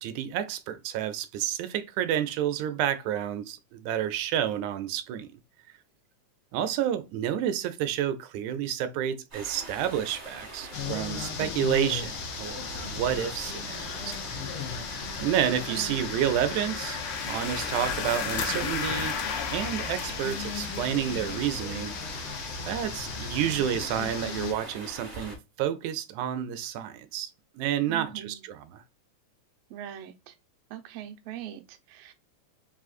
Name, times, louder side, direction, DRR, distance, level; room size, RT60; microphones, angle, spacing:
voice 1, 0.0-5.3 6.5-14.1 15.2-17.0 17.3-19.2 19.5-21.9 22.7-27.3 27.6-28.8, right 10 dB, 90° right, 2.0 m, -30 dB
Stream, 9.3-25.4, right 1 dB, 25° right, 2.1 m, -43 dB
sound 1, 10.7-24.5, left 6 dB, 70° left, 1.4 m, -34 dB
voice 2, 15.7-16.0 27.9-28.4 29.7-30.3 30.7-32.1, right 11 dB, 70° right, 1.6 m, -41 dB
4.7 x 3.7 x 2.4 m
omnidirectional pair, 3.3 m